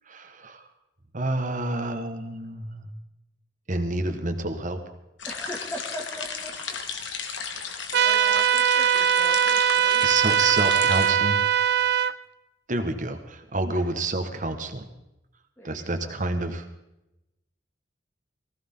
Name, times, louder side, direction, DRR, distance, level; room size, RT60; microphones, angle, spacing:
voice 1, 0.1-0.7 1.1-2.9 3.7-4.8 8.3-8.4 10.0-11.4 12.7-14.9 15.6-16.6, right 2 dB, 45° right, 7 dB, 1.5 m, -28 dB
sound 1, 5.2-11.1, left 6 dB, 85° left, 1.8 m, -34 dB
voice 2, 5.2-6.5 7.6-10.1 13.7-13.8 15.6-16.1, left 1 dB, 10° left, -4 dB, 2.2 m, -40 dB
sound 2, 7.9-12.1, right 9 dB, 60° right, 0.5 m, -21 dB
19.0 x 15.5 x 3.8 m, 0.91 s
head